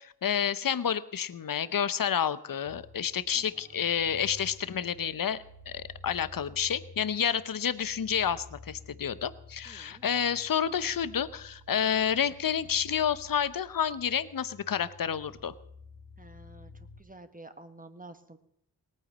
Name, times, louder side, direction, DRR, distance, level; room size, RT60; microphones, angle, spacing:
voice 1, 0.0-15.5, left 8 dB, 55° left, 16 dB, 0.8 m, -29 dB
sound 1, 2.7-17.0, left 2 dB, 75° left, 2.8 m, -52 dB
voice 2, 3.3-3.8 9.6-10.0 16.2-18.4, right 2 dB, 20° right, 9 dB, 1.3 m, -50 dB
18.0 x 9.4 x 7.3 m, 0.73 s
cardioid pair, 45°, 39 cm